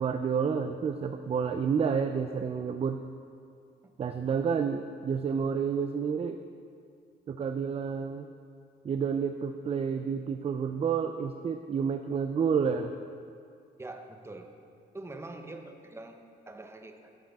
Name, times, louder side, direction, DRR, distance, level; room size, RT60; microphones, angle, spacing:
voice 1, 0.0-3.0 4.0-6.4 7.3-8.3 8.8-12.9, right 6 dB, 30° right, 7 dB, 0.4 m, -29 dB
voice 2, 13.8-14.5 14.9-17.1, right 2 dB, 15° right, 5 dB, 0.7 m, -44 dB
11.5 x 6.3 x 3.5 m, 2.4 s
cardioid pair, 90°, 20 cm